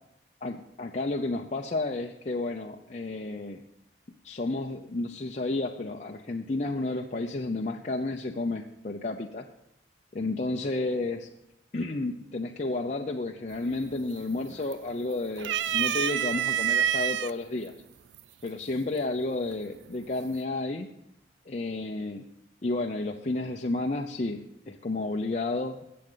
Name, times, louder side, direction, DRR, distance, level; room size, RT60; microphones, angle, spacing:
voice 1, 0.4-3.6 4.2-9.4 10.1-11.3 11.7-17.7 18.4-20.9 21.5-22.2 22.6-25.8, left 2 dB, 40° left, 1 dB, 0.6 m, -31 dB
sound 1, 13.5-13.9 14.3-15.0 15.4-17.3 18.2-18.3 19.5-20.0, right 10 dB, 85° right, 0.4 m, -27 dB
19.0 x 7.8 x 3.9 m, 0.82 s
head